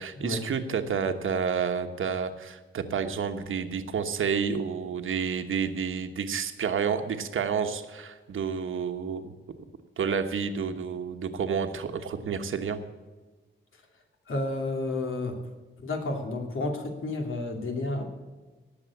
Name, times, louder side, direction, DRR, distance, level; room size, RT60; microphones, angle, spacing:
voice 1, 0.0-9.3 10.0-12.8, right 6 dB, 85° right, 7 dB, 1.3 m, -30 dB
voice 2, 14.3-15.4 15.8-18.0, left 2 dB, 85° left, 3 dB, 2.7 m, -31 dB
18.5 x 7.3 x 7.1 m, 1.3 s
wide cardioid pair, 140°, 20 cm